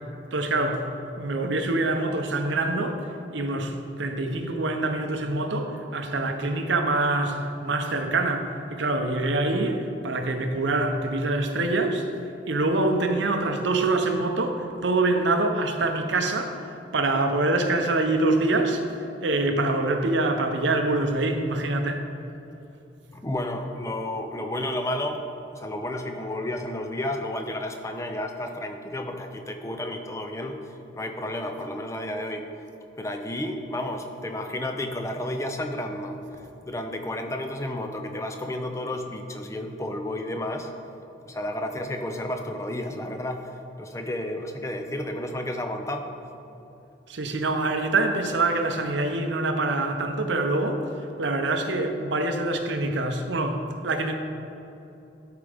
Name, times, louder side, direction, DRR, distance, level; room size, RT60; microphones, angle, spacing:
voice 1, 0.3-0.9 1.2-12.1 12.5-22.0 47.1-54.2, right 2 dB, 70° right, 5 dB, 0.7 m, -25 dB
voice 2, 23.1-25.3 25.5-30.6 30.9-32.5 33.0-36.2 36.6-40.7 41.2-43.5 43.8-46.1, left 1 dB, 15° left, 5 dB, 0.5 m, -31 dB
12.5 x 4.8 x 3.4 m, 2.8 s
head